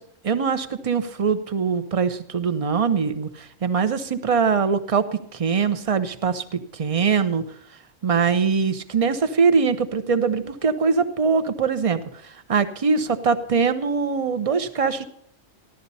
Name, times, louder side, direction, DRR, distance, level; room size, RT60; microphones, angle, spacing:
voice 1, 0.3-7.4 8.0-15.0, right 5 dB, 30° right, 10 dB, 0.9 m, -22 dB
15.5 x 12.0 x 4.1 m, 0.68 s
omnidirectional pair, 1.3 m